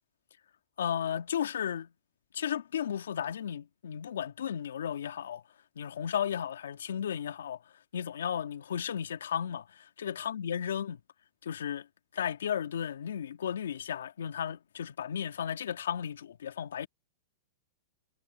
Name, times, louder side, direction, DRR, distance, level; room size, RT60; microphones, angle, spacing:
voice 1, 0.8-1.9 2.3-5.4 5.8-7.6 7.9-11.0 11.4-11.9 12.1-16.9, left 9 dB, 85° left, 2.4 m, -34 dB
hypercardioid pair, 130°, 0 cm